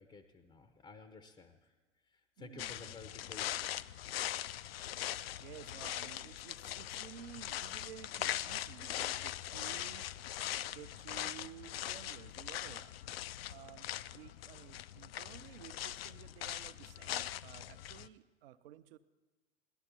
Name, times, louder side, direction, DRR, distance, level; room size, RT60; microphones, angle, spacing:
voice 1, 0.0-1.8 2.0-3.7, left 4 dB, 15° left, 8 dB, 0.7 m, -54 dB
voice 2, 2.4-2.9 5.4-10.1 10.7-12.9 13.4-19.0, right 11 dB, 50° right, 12 dB, 0.8 m, -53 dB
sound 1, 2.6-18.1, left 13 dB, 55° left, 0.5 m, -41 dB
18.0 x 11.5 x 4.5 m, 1.3 s
figure-of-eight pair, 100°, 37 cm